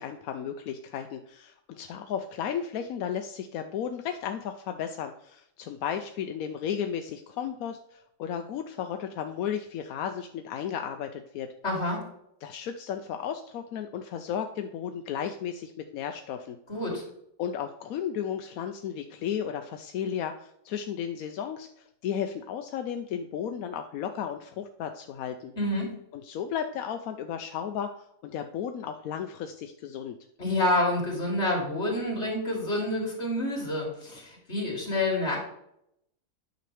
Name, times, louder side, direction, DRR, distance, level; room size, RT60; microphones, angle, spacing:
voice 1, 0.0-11.5 12.4-16.6 17.4-25.5 26.1-30.2, left 8 dB, 85° left, 6 dB, 1.1 m, -34 dB
voice 2, 11.6-12.0 16.7-17.0 25.6-25.9 30.4-35.4, left 1 dB, 50° left, -2 dB, 3.0 m, -28 dB
9.2 x 6.2 x 3.3 m, 0.75 s
omnidirectional pair, 1.4 m